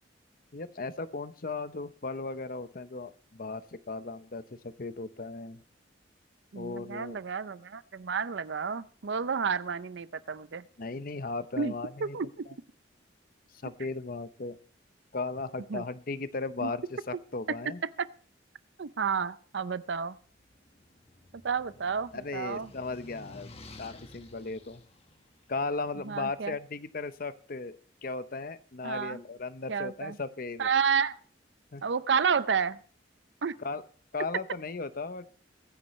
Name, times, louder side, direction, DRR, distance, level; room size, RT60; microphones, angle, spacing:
voice 1, 0.5-3.6 3.9-5.6 6.5-7.2 10.8-12.2 13.6-14.6 15.1-17.8 22.1-23.5 23.8-24.8 25.5-27.8 28.0-30.7 31.7-31.8 33.6-33.8 34.1-35.3, left 3 dB, 50° left, 13 dB, 0.8 m, -36 dB
voice 2, 6.5-10.6 11.6-11.7 12.0-12.5 15.7-15.8 16.6-16.7 17.5-18.1 18.8-20.2 21.4-22.7 26.0-26.6 28.8-29.2 29.7-30.2 30.6-31.2 31.8-32.8 33.4-33.6, right 6 dB, 65° right, 16 dB, 0.5 m, -30 dB
sound 1, 20.2-26.5, left 2 dB, 35° left, 1.4 m, -52 dB
22.5 x 9.9 x 3.2 m, 0.44 s
head